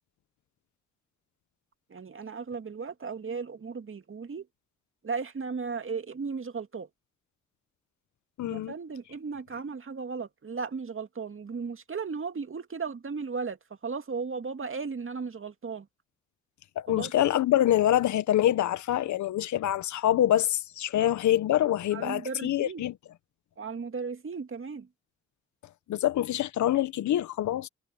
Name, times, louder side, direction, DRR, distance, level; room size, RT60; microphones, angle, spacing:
voice 1, 1.9-4.5 5.0-6.9 8.5-15.9 16.9-17.1 21.0-21.1 21.9-22.8 23.6-24.9, right 5 dB, 45° right, 2.4 m, -36 dB
voice 2, 8.4-8.7 16.7-22.9 25.9-27.7, left 12 dB, 75° left, 1.5 m, -25 dB
hypercardioid pair, 40°, 29 cm